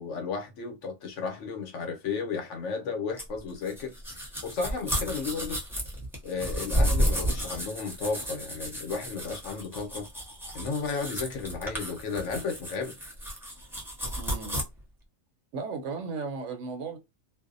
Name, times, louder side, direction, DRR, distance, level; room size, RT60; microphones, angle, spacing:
voice 1, 0.0-5.6 6.2-10.1 10.5-13.0, left 4 dB, 70° left, 1.0 m, -33 dB
sound 1, 3.2-14.6, equal, ahead, 0.5 m, -32 dB
voice 2, 14.2-14.6 15.5-17.0, right 4 dB, 70° right, 0.9 m, -35 dB
2.6 x 2.0 x 2.4 m
omnidirectional pair, 1.4 m